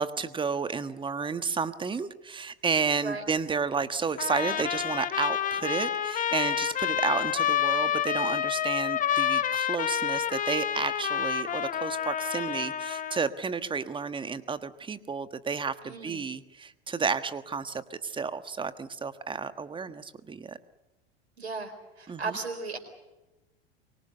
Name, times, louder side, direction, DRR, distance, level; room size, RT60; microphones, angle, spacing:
voice 1, 0.0-20.6 22.1-22.4, right 5 dB, 15° right, 12 dB, 1.4 m, -31 dB
Trumpet, 4.2-13.3, left 9 dB, 25° left, 1.3 m, -29 dB
voice 2, 15.8-16.3 21.4-22.8, right 4 dB, 80° right, 6 dB, 4.5 m, -36 dB
25.0 x 23.5 x 6.7 m, 1.0 s
figure-of-eight pair, 85°, 32 cm